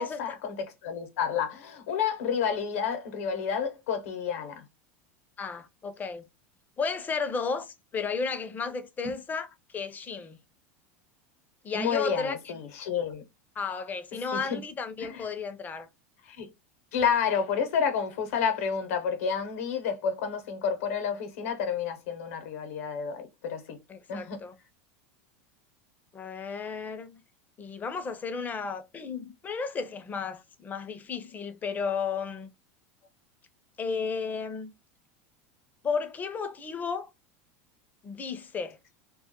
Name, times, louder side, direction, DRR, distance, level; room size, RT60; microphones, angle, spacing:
voice 1, 0.0-4.6 9.0-9.1 11.7-13.2 14.3-14.6 15.0-15.3 16.2-16.5 16.9-23.8 24.1-24.4, left 6 dB, 80° left, 0.7 m, -30 dB
voice 2, 5.4-6.2 6.8-9.5 9.7-10.4 11.6-12.4 13.6-15.9 23.9-24.5 26.1-27.2 27.6-32.5 33.8-34.7 35.8-37.1 38.0-38.8, left 5 dB, 25° left, 0.4 m, -33 dB
2.2 x 2.0 x 2.8 m
supercardioid pair, 110°, 7 cm